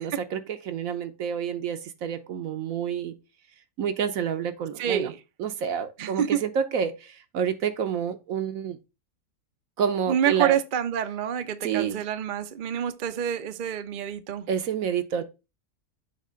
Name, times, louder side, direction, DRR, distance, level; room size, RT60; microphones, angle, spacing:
voice 1, 0.0-3.1 3.8-5.1 5.4-8.8 9.8-10.5 11.6-12.0 14.5-15.2, right 8 dB, 70° right, 1.2 m, -28 dB
voice 2, 4.8-5.2 6.0-6.4 10.1-14.5, right 9 dB, 50° right, 0.6 m, -27 dB
7.5 x 2.9 x 5.5 m
omnidirectional pair, 1.5 m